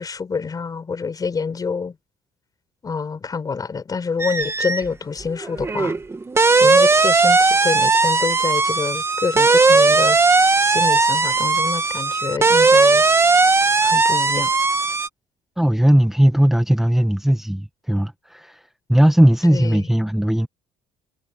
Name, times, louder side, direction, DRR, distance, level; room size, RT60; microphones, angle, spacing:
voice 1, 0.0-1.9 2.8-5.9 6.6-10.2 10.6-13.0 13.8-14.5 19.5-19.9, left 5 dB, 30° left, 4.8 m, -27 dB
sound 1, 4.2-4.9 5.2-15.1, right 3 dB, 20° right, 2.0 m, -17 dB
voice 2, 15.6-18.6 18.9-20.5, equal, 5° right, 1.2 m, -17 dB
cardioid pair, 105°, 13 cm